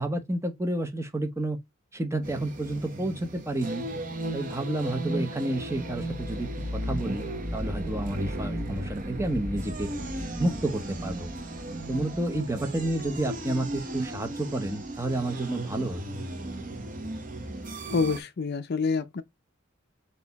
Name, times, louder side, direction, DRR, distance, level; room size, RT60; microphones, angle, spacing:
voice 1, 0.0-1.6 1.9-3.8 4.3-7.3 7.5-9.9 10.4-11.3 11.9-16.0, right 1 dB, 15° right, 0.7 m, -30 dB
sound 1, 2.2-18.2, right 1 dB, 40° right, 0.9 m, -35 dB
voice 2, 17.9-19.2, left 4 dB, 50° left, 0.5 m, -27 dB
4.1 x 2.6 x 4.0 m
head